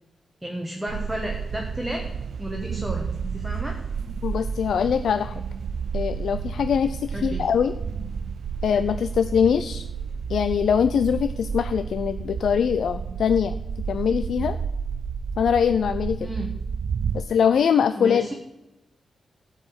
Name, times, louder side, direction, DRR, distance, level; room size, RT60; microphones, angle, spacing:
voice 1, 0.4-2.1 2.4-3.8 7.1-7.5 16.2-16.5 17.9-18.3, equal, 5° right, 1 dB, 1.1 m, -32 dB
sound 1, 0.9-17.2, right 6 dB, 60° right, 0.4 m, -31 dB
voice 2, 4.2-5.4 5.9-7.7 8.6-9.9 10.3-13.6 13.9-14.6 15.4-16.3 17.1-18.3, left 7 dB, 75° left, 11 dB, 0.4 m, -22 dB
12.5 x 4.9 x 7.8 m, 0.97 s
wide cardioid pair, 140°, 0 cm